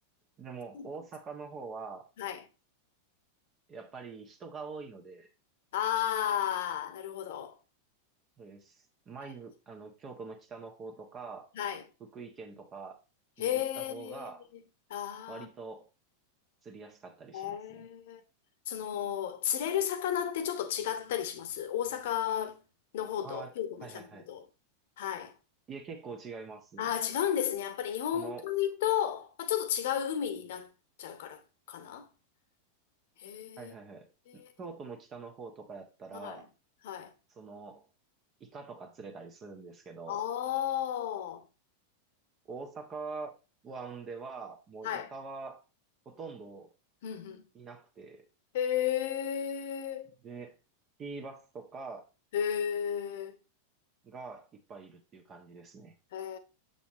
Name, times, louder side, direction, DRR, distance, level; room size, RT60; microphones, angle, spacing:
voice 1, 0.4-2.0 3.7-5.3 8.4-11.5 12.1-13.0 13.4-14.4 15.3-15.9 16.6-17.9 23.2-23.5 23.8-24.3 25.7-26.9 28.1-28.5 33.6-36.5 37.3-37.9 38.4-40.3 42.5-43.3 43.6-45.6 46.0-46.7 47.5-48.3 50.2-50.5 51.0-52.0 54.0-55.9, right 4 dB, 25° right, 1.3 m, -44 dB
voice 2, 5.7-7.6 11.5-11.8 13.4-14.3 14.9-15.5 17.3-18.2 18.7-22.6 22.9-24.5 25.0-25.3 26.8-30.7 31.0-31.4 31.7-32.1 33.2-33.7 34.3-34.5 36.1-36.4 36.8-37.1 40.1-41.5 44.8-45.1 47.0-47.4 48.5-50.1 52.3-53.4 56.1-56.4, left 10 dB, 55° left, 1.1 m, -33 dB
7.2 x 7.0 x 3.0 m
figure-of-eight pair, 90°, 0 cm